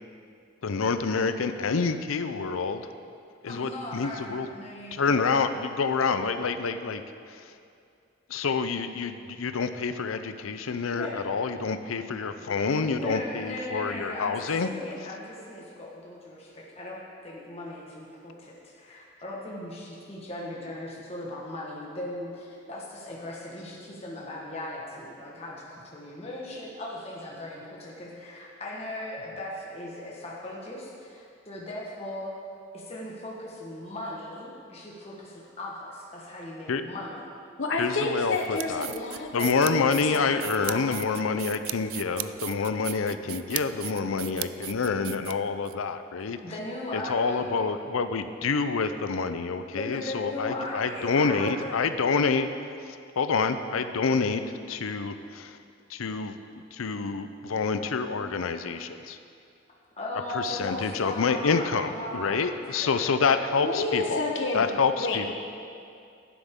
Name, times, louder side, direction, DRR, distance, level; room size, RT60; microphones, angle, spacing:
voice 1, 0.6-2.9 3.4-4.5 4.9-7.0 8.3-14.7 36.7-36.8 37.8-38.9 39.3-46.4 46.9-52.5 53.2-54.4 54.7-55.6 55.9-56.4 56.7-59.2 60.3-64.2 64.5-65.3, left 5 dB, 90° left, 10 dB, 0.5 m, -27 dB
voice 2, 3.4-5.3 10.6-11.3 12.4-32.3 32.7-37.3 46.4-47.7 49.7-51.8 60.0-62.4 62.7-62.9 64.0-64.4, left 1 dB, 30° left, -4 dB, 1.4 m, -38 dB
voice 3, 37.6-39.5 40.0-41.0 63.6-64.7 65.0-65.3, left 3 dB, 65° left, 2 dB, 1.1 m, -30 dB
sound 1, 38.3-45.7, right 16 dB, 85° right, 0.3 m, -37 dB
11.5 x 10.0 x 3.7 m, 2.4 s
head